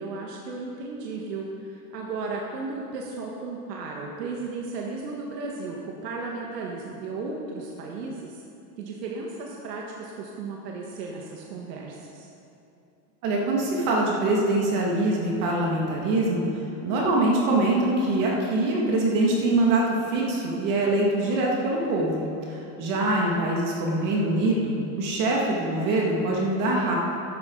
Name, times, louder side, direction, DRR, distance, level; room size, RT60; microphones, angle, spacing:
voice 1, 0.0-8.4 8.8-12.3, right 3 dB, 85° right, -1 dB, 1.7 m, -35 dB
voice 2, 13.2-16.5 16.8-26.9, right 2 dB, 40° right, -3 dB, 2.2 m, -24 dB
13.0 x 12.0 x 4.0 m, 2.7 s
supercardioid pair, 155°, 48 cm